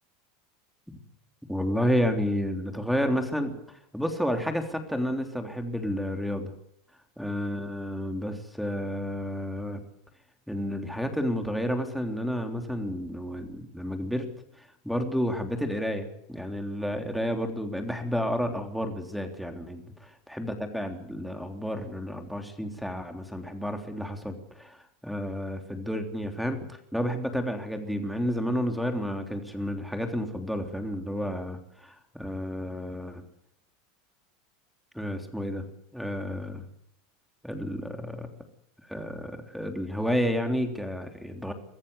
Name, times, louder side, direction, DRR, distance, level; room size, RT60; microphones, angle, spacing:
voice 1, 1.5-6.5 7.2-9.8 10.5-14.3 14.6-19.8 20.3-33.2 34.9-35.6 35.9-36.6 37.4-38.3 38.9-41.5, equal, ahead, 5 dB, 3.4 m, -31 dB
23.5 x 14.5 x 8.3 m, 0.73 s
supercardioid pair, 135°, 0 cm